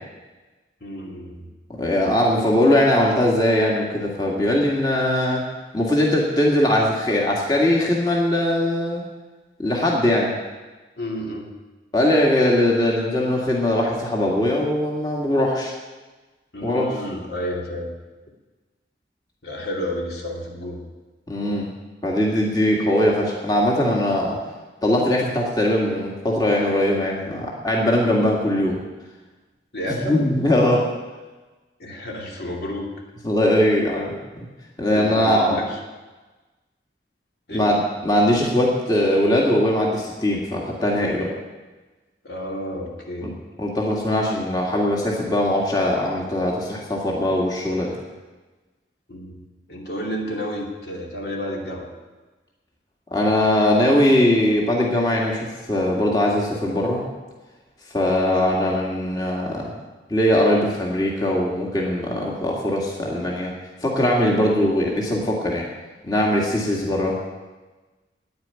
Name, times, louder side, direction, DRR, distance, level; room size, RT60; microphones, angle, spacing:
voice 1, 0.8-1.5 11.0-11.5 16.5-17.9 19.4-20.8 29.7-30.2 31.8-32.9 34.9-35.8 37.5-37.7 42.2-43.3 49.1-49.4 49.7-51.9 66.7-66.9, equal, 65° left, -1 dB, 2.6 m, -31 dB
voice 2, 1.7-5.4 5.7-9.0 9.6-10.3 11.9-15.7 16.6-16.9 21.3-21.7 22.0-24.4 24.8-28.8 30.0-30.9 33.2-34.5 34.8-35.6 37.5-41.3 43.2-43.3 43.6-48.0 53.1-57.1 57.9-59.7 60.1-63.5 63.8-65.7 66.0-67.2, left 1 dB, 20° left, -2 dB, 1.9 m, -20 dB
10.0 x 9.5 x 9.4 m, 1.2 s
head